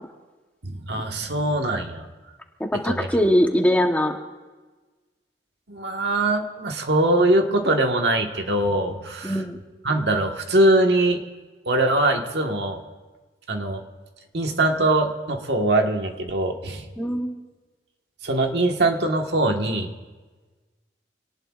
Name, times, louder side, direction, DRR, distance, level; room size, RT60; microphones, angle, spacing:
voice 1, 0.6-2.1 2.9-3.1 5.7-9.4 9.8-11.2 11.6-12.8 13.5-13.8 14.3-16.8 18.2-19.9, right 1 dB, 70° right, 3 dB, 1.5 m, -22 dB
voice 2, 2.6-4.2 9.2-9.6 17.0-17.4, equal, 10° left, 3 dB, 1.0 m, -21 dB
26.0 x 18.5 x 2.5 m, 1.3 s
head